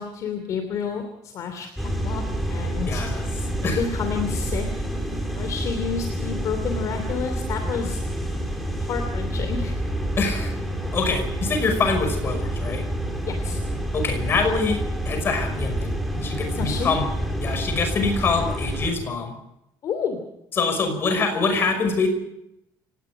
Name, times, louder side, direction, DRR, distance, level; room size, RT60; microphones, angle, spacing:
voice 1, 0.0-3.0 3.7-4.7 5.3-8.0 8.8-9.7 13.2-13.6 16.6-16.9 19.8-20.2, left 6 dB, 45° left, 6 dB, 3.0 m, -30 dB
sound 1, 1.8-18.9, right 1 dB, ahead, 3.9 m, -28 dB
voice 2, 2.9-3.2 3.6-3.8 10.2-10.5 10.9-12.8 13.9-17.1 17.4-19.3 20.6-22.1, left 4 dB, 30° left, 6 dB, 5.6 m, -25 dB
29.5 x 18.5 x 4.9 m, 0.81 s
cardioid pair, 180°, 8 cm